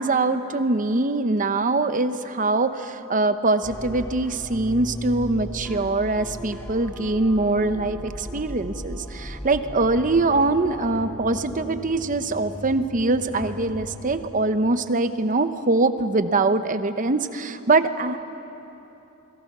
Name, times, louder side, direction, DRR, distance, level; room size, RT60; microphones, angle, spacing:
voice 1, 0.0-18.2, right 2 dB, 40° right, 10 dB, 0.9 m, -23 dB
sound 1, 3.6-14.3, equal, 10° left, 0.8 m, -37 dB
28.0 x 22.0 x 6.1 m, 3.0 s
head